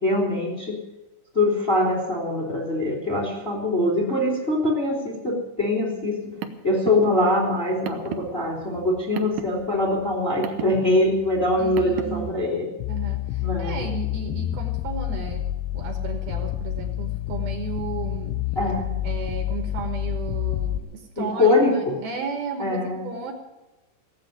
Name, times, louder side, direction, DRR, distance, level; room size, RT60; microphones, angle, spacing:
voice 1, 0.0-0.8 1.3-6.2 6.6-12.7 13.4-13.9 18.5-18.9 21.2-21.9 22.6-23.1, left 1 dB, 15° left, -1 dB, 2.6 m, -23 dB
Car, 6.1-12.3, right 8 dB, 90° right, 1.8 m, -36 dB
voice 2, 11.6-12.3 12.9-15.5 15.7-18.4 19.0-23.3, right 5 dB, 65° right, 4 dB, 2.9 m, -34 dB
sound 1, 12.8-20.8, left 13 dB, 80° left, 2.3 m, -28 dB
17.0 x 8.3 x 9.3 m, 1.0 s
omnidirectional pair, 5.2 m